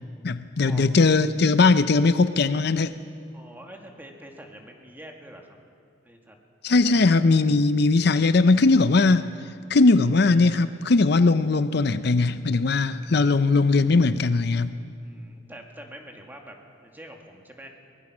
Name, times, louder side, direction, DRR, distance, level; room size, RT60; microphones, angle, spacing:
voice 1, 0.2-3.0 6.6-9.3 9.7-14.8, left 3 dB, 60° left, 12 dB, 0.6 m, -19 dB
voice 2, 3.3-5.6 6.0-6.4 6.9-7.1 15.0-17.7, right 1 dB, 10° right, 2 dB, 2.2 m, -45 dB
22.5 x 20.5 x 6.2 m, 2.3 s
head